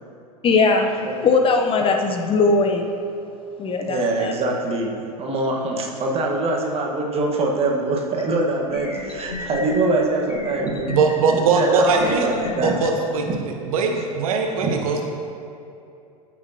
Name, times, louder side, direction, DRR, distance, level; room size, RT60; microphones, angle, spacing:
voice 1, 0.4-2.9 3.6-4.3, left 4 dB, 25° left, 3 dB, 0.8 m, -19 dB
voice 2, 3.8-11.0 11.3-12.7 13.3-13.4 14.6-14.7, right 2 dB, 30° right, -1 dB, 1.6 m, -24 dB
sound 1, 8.2-8.3 8.7-9.8 10.3-11.3 11.8-12.9, left 3 dB, 85° left, 0.9 m, -34 dB
voice 3, 10.9-12.3 12.6-13.3 13.6-15.0, right 4 dB, 65° right, 3 dB, 0.9 m, -20 dB
14.5 x 6.2 x 2.9 m, 2.7 s
figure-of-eight pair, 85°, 20 cm